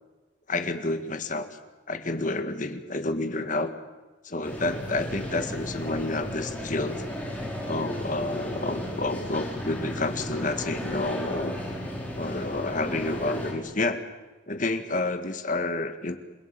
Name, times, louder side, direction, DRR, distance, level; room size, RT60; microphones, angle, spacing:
voice 1, 0.5-1.5 1.9-3.7 4.2-7.0 7.7-11.6 12.2-14.1 14.5-16.2, left 2 dB, 45° left, 8 dB, 2.0 m, -29 dB
sound 1, 4.4-13.5, equal, 10° left, 5.2 m, -34 dB
29.0 x 17.0 x 9.1 m, 1.2 s
head